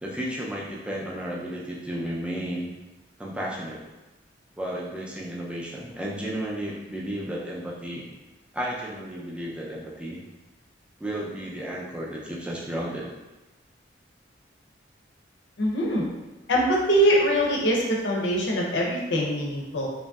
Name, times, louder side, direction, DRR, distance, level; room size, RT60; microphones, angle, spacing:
voice 1, 0.0-2.7 3.2-3.8 4.6-8.0 8.5-10.2 11.0-13.1, right 1 dB, 5° right, -4 dB, 0.4 m, -33 dB
voice 2, 15.6-16.0 16.5-19.9, equal, 75° left, -1 dB, 0.6 m, -23 dB
2.9 x 2.5 x 2.3 m, 1.1 s
head